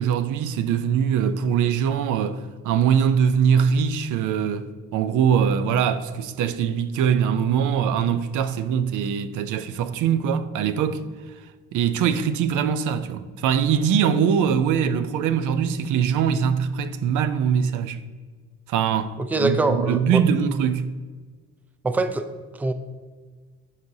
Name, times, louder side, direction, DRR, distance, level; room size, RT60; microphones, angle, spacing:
voice 1, 0.0-11.0 11.7-18.0 18.7-20.9, right 7 dB, 80° right, 0.5 m, -22 dB
voice 2, 19.2-20.2 21.8-22.3 22.6-22.7, right 2 dB, 5° right, 0.4 m, -23 dB
11.5 x 4.1 x 2.7 m
cardioid pair, 90°, 30 cm